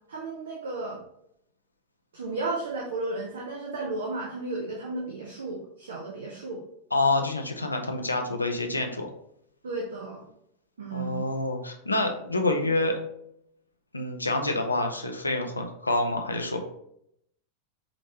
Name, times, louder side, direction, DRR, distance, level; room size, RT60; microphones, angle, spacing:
voice 1, 0.1-1.0 2.1-6.6 9.6-10.3 10.8-11.2, right 2 dB, 65° right, -2 dB, 0.8 m, -34 dB
voice 2, 6.9-9.1 10.9-13.0 13.9-16.6, left 2 dB, 80° left, 4 dB, 0.6 m, -27 dB
5.1 x 3.1 x 2.9 m, 0.75 s
figure-of-eight pair, 90°, 0 cm